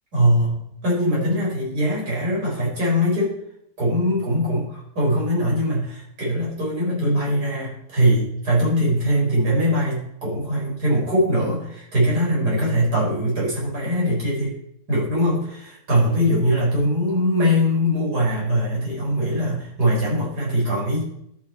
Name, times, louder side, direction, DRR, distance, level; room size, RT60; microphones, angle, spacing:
voice 1, 0.1-3.4 3.8-4.7 4.9-14.6 14.9-21.0, equal, 85° right, -5 dB, 5.0 m, -21 dB
12.5 x 6.1 x 4.4 m, 0.75 s
omnidirectional pair, 1.7 m